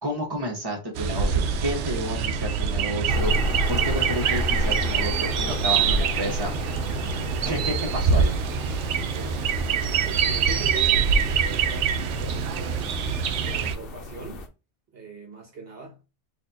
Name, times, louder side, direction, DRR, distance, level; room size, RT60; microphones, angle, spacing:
voice 1, 0.0-3.3 3.7-6.5 7.5-8.3, equal, 20° right, 1.3 m, -30 dB
sound 1, 1.0-13.7, right 6 dB, 80° right, 0.9 m, -25 dB
sound 2, 3.1-14.5, left 2 dB, 55° left, 0.9 m, -33 dB
voice 2, 10.0-13.0 13.4-14.5 14.9-16.0, right 3 dB, 60° right, 1.1 m, -40 dB
4.1 x 2.7 x 2.7 m
omnidirectional pair, 1.2 m